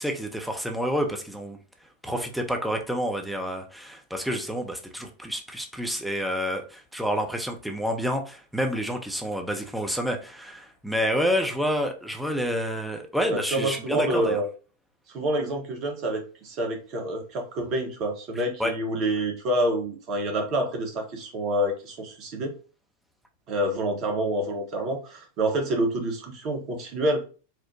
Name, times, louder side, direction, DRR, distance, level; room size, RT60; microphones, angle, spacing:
voice 1, 0.0-1.6 2.0-14.4 18.6-18.7, equal, ahead, 3 dB, 0.6 m, -28 dB
voice 2, 13.3-14.5 15.1-22.5 23.5-27.2, right 1 dB, 40° right, 2 dB, 1.0 m, -27 dB
4.4 x 2.1 x 2.6 m, 0.36 s
figure-of-eight pair, 90°, 0 cm